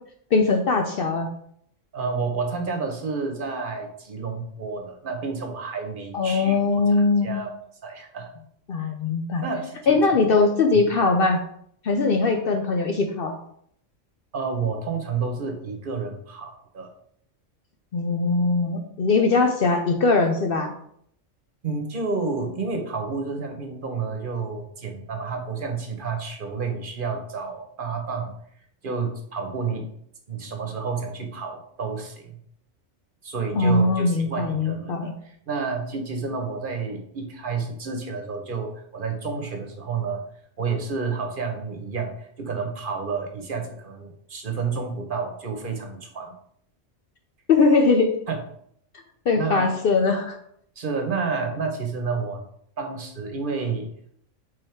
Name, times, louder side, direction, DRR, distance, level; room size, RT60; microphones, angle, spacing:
voice 1, 0.3-1.3 6.1-7.4 8.7-9.4 9.9-11.4 11.8-13.4 17.9-20.7 33.6-35.1 47.5-48.1 49.3-50.4, left 3 dB, 55° left, 4 dB, 0.7 m, -21 dB
voice 2, 1.9-6.6 7.2-7.5 7.8-8.3 9.4-10.0 14.3-16.9 21.6-28.3 28.8-29.9 30.3-32.4 33.2-35.0 35.2-40.2 40.6-46.3 48.3-48.4 49.4-49.7 50.8-52.5 52.8-53.9, right 4 dB, 45° right, 4 dB, 1.1 m, -30 dB
5.1 x 4.1 x 4.5 m, 0.68 s
omnidirectional pair, 1.3 m